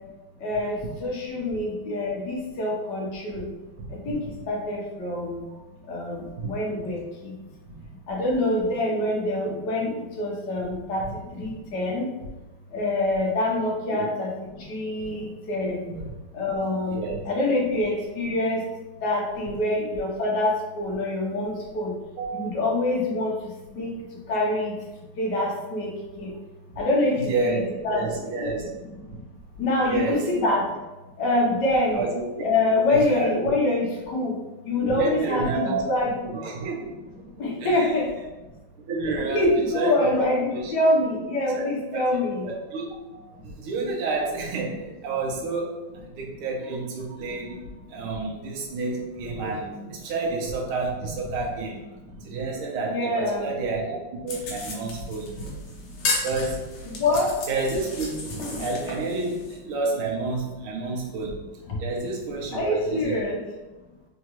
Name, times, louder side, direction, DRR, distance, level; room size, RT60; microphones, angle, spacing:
voice 1, 0.4-3.4 4.1-4.2 4.5-5.4 5.9-7.3 8.1-11.0 11.3-12.0 12.7-14.3 14.6-15.8 16.3-17.0 17.3-18.6 19.0-21.9 22.3-23.3 23.7-23.9 24.3-24.7 25.2-25.9 26.2-26.3 26.8-28.0 28.3-28.5 29.6-30.6 31.2-32.0 32.4-34.3 34.6-36.1 37.4-38.1 39.0-42.5 52.9-53.5 56.8-57.3 62.5-63.4, left 2 dB, 60° left, -2 dB, 1.4 m, -25 dB
voice 2, 16.9-17.2 22.2-22.4 27.2-27.6 27.9-28.7 29.9-30.3 31.9-32.2 32.9-33.5 34.8-37.9 38.9-39.4 39.7-40.2 40.5-40.7 41.5-41.7 41.9-42.9 43.1-51.8 52.2-55.3 56.2-56.6 57.5-58.3 58.6-61.4 61.8-63.3, right 3 dB, 80° right, -1 dB, 1.7 m, -30 dB
sound 1, 54.3-59.6, left 2 dB, 80° left, 1.7 m, -33 dB
4.5 x 2.8 x 3.0 m, 1.1 s
omnidirectional pair, 2.3 m